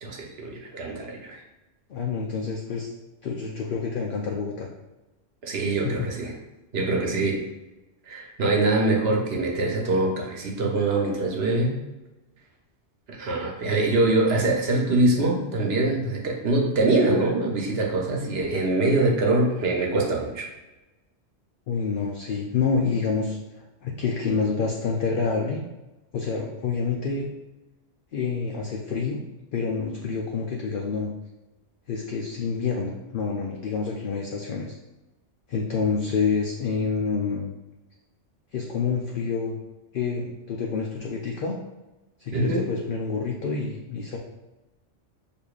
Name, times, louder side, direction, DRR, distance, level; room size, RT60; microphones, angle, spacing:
voice 1, 0.0-1.4 5.4-6.3 6.7-7.4 8.1-11.8 13.1-20.5 42.3-42.6, right 2 dB, 60° right, 0 dB, 1.0 m, -24 dB
voice 2, 1.9-2.9 3.2-4.7 5.6-6.1 21.7-23.4 23.8-25.6 26.1-27.3 28.1-29.2 29.5-31.1 31.9-34.8 35.5-37.5 38.5-39.6 39.9-41.5 42.2-44.2, left 5 dB, 60° left, -1 dB, 0.6 m, -27 dB
6.6 x 2.6 x 2.4 m, 1.1 s
omnidirectional pair, 1.2 m